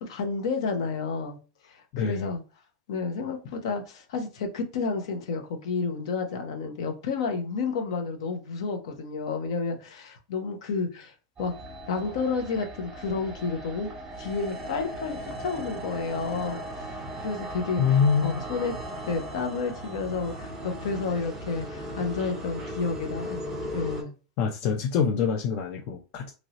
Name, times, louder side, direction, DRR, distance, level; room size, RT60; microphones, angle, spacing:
voice 1, 0.0-1.4 1.6-2.4 2.9-11.1 11.4-11.5 11.9-13.9 14.2-18.7 19.1-23.4 23.7-24.1, left 4 dB, 65° left, 0.8 m, -31 dB
voice 2, 1.9-2.3 17.8-18.4 24.4-26.3, left 6 dB, 35° left, 0.4 m, -25 dB
sound 1, 11.4-24.0, right 1 dB, 15° right, 1.2 m, -37 dB
3.0 x 2.7 x 2.9 m
supercardioid pair, 170°, 3 cm